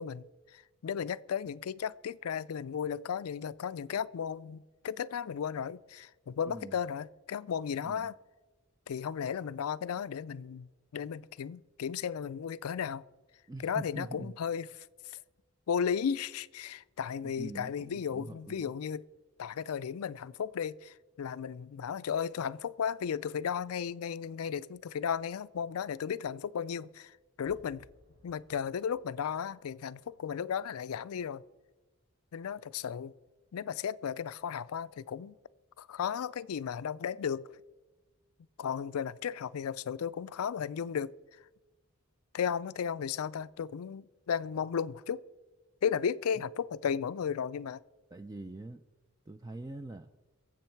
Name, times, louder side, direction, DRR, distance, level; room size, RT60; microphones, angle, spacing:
voice 1, 0.0-8.1 8.9-13.0 13.6-14.7 15.0-15.2 15.7-19.0 19.4-27.9 28.2-31.4 32.3-33.1 33.5-35.3 35.8-37.6 38.6-41.1 42.3-45.2 45.8-47.8, left 7 dB, 85° left, 0.4 m, -35 dB
voice 2, 6.4-6.8 7.8-8.1 13.5-14.3 17.2-18.7 48.1-48.8 49.3-50.1, right 2 dB, 15° right, 0.4 m, -43 dB
sound 1, 27.4-30.3 30.6-30.7, left 1 dB, 55° right, 3.0 m, -63 dB
22.5 x 7.7 x 4.5 m
head